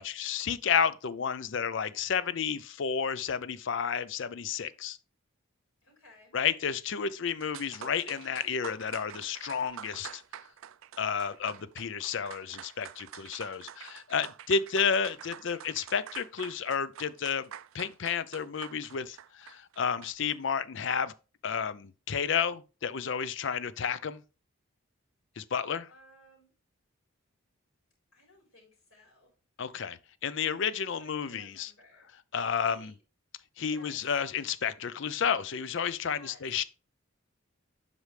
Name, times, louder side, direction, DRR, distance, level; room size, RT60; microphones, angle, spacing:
voice 1, 0.0-5.0 6.3-10.2 11.0-21.1 21.4-24.2 25.4-25.9 29.6-31.7 32.3-32.9 33.6-36.6, left 6 dB, 60° left, 0.5 m, -31 dB
voice 2, 5.8-6.3 25.9-26.5 28.1-29.3 30.8-32.1 32.6-33.0 33.6-34.0 36.1-36.4, left 1 dB, 85° left, 4.2 m, -57 dB
sound 1, 7.1-7.2 7.4-20.4, right 9 dB, 75° right, 0.4 m, -47 dB
8.0 x 5.5 x 3.3 m
head